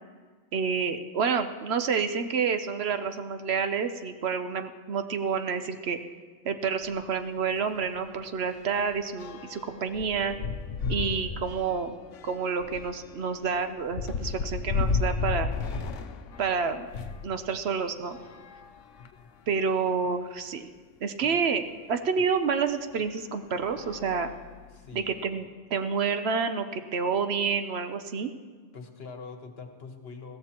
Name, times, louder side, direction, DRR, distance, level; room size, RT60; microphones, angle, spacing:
voice 1, 0.5-6.0 6.4-10.4 10.9-11.9 12.2-15.5 16.4-16.9 17.2-18.2 19.5-20.7 21.0-21.6 21.9-24.3 24.9-28.3, right 5 dB, 65° right, 8 dB, 0.9 m, -29 dB
sound 1, 6.8-7.0 7.4-7.5 7.8-17.3 18.0-19.4 20.0-20.1 20.4-20.5 22.2-22.3 22.9-23.1 23.6-24.9, left 5 dB, 85° left, 1.0 m, -34 dB
voice 2, 24.7-25.2 28.7-30.4, left 4 dB, 55° left, 5 dB, 1.3 m, -43 dB
21.0 x 15.0 x 2.9 m, 1.5 s
omnidirectional pair, 1.2 m